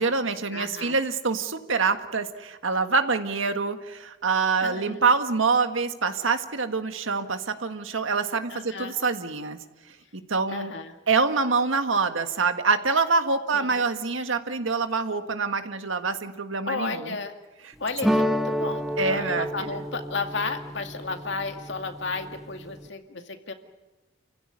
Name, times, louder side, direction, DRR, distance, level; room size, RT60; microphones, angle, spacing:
voice 1, 0.0-9.6 10.1-10.7 11.1-17.1 19.0-19.8, right 4 dB, 80° right, 8 dB, 1.7 m, -25 dB
voice 2, 0.5-1.0 4.6-5.1 8.5-8.9 10.5-10.9 13.5-13.8 16.7-17.3 17.8-23.5, left 4 dB, 65° left, 5 dB, 2.2 m, -33 dB
sound 1, 18.0-22.9, equal, ahead, 1.0 m, -30 dB
29.0 x 16.0 x 9.7 m, 1.1 s
head